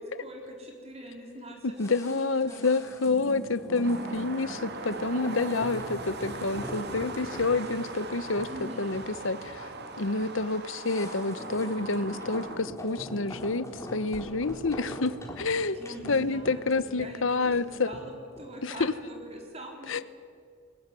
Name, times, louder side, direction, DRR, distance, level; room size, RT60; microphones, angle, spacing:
voice 1, 0.0-1.8 2.1-2.7 3.2-3.5 8.5-9.0 15.7-20.0, equal, 30° right, 1 dB, 4.2 m, -44 dB
voice 2, 1.8-9.7 10.0-13.7 13.9-15.8 16.1-17.9 18.6-18.9 19.9-20.0, left 3 dB, 75° left, 15 dB, 1.0 m, -28 dB
sound 1, 1.8-19.0 19.3-19.4, equal, 15° left, 3.7 m, -42 dB
sound 2, 3.8-12.6, right 3 dB, 55° right, 2.0 m, -40 dB
21.0 x 19.5 x 9.9 m, 2.1 s
head